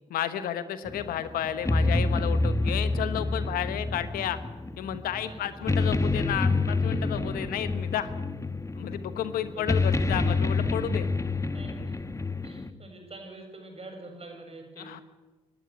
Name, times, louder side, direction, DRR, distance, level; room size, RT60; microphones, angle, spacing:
voice 1, 0.1-4.4 4.8-8.1 8.7-11.1 14.8-15.0, left 10 dB, 75° left, 12 dB, 1.2 m, -32 dB
sound 1, 0.9-12.7, left 3 dB, 20° left, 1.3 m, -28 dB
voice 2, 5.2-5.6 6.8-7.0 7.2-7.5 9.4-10.0 11.5-12.0 12.4-15.0, right 2 dB, 40° right, 3 dB, 7.5 m, -46 dB
23.5 x 11.5 x 9.6 m, 1.2 s
hypercardioid pair, 45°, 15 cm